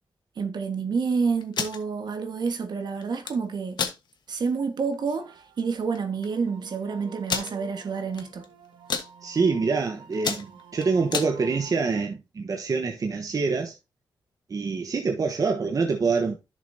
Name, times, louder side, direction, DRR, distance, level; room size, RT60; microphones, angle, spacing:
voice 1, 0.4-3.8 4.3-8.4, right 5 dB, 65° right, 1.6 m, -28 dB
sound 1, 1.4-1.8 3.0-3.3 3.7-4.0 4.5-4.6 4.9-5.2 6.0-6.1 6.2-6.3 7.3-7.5 8.1-8.5 8.7-9.1 9.6-9.8 10.1-11.3, left 6 dB, 65° left, 1.3 m, -29 dB
sound 2, 5.2-12.1, right 7 dB, 90° right, 1.1 m, -48 dB
voice 2, 9.2-13.8 14.5-16.4, right 4 dB, 45° right, 1.1 m, -26 dB
10.5 x 6.7 x 2.8 m
cardioid pair, 80°, 8 cm